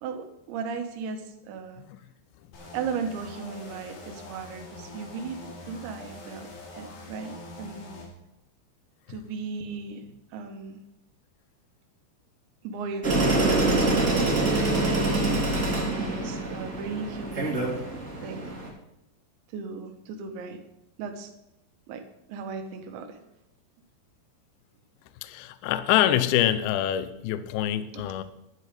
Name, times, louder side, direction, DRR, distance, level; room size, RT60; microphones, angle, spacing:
voice 1, 0.0-1.8 2.7-8.0 9.1-10.8 12.6-14.9 15.7-17.8 18.2-18.6 19.5-20.6 21.0-21.3 21.9-22.0 22.3-23.2 27.9-28.1, right 5 dB, 80° right, 6 dB, 3.5 m, -36 dB
sound 1, 2.5-8.1, left 2 dB, 55° left, 3.9 m, -44 dB
sound 2, 13.0-18.7, right 2 dB, 25° right, 1.7 m, -25 dB
voice 2, 25.2-28.2, left 12 dB, 80° left, 13 dB, 2.2 m, -25 dB
11.5 x 11.0 x 5.1 m, 0.87 s
omnidirectional pair, 5.2 m